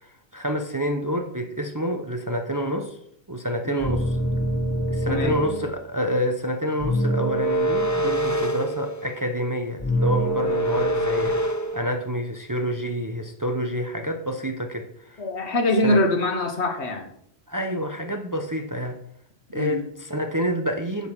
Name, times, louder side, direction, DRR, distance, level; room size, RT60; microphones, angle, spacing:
voice 1, 0.0-3.0 3.3-4.0 4.9-15.2 15.8-16.0 17.5-19.0 19.5-21.1, equal, 20° right, 5 dB, 0.8 m, -28 dB
sound 1, 3.8-5.8 6.8-9.2 9.8-11.8, equal, 20° left, 0.6 m, -24 dB
voice 2, 5.0-5.4 15.2-17.1 19.5-19.8, left 1 dB, 75° left, 6 dB, 1.7 m, -24 dB
8.3 x 7.9 x 6.1 m, 0.73 s
omnidirectional pair, 1.1 m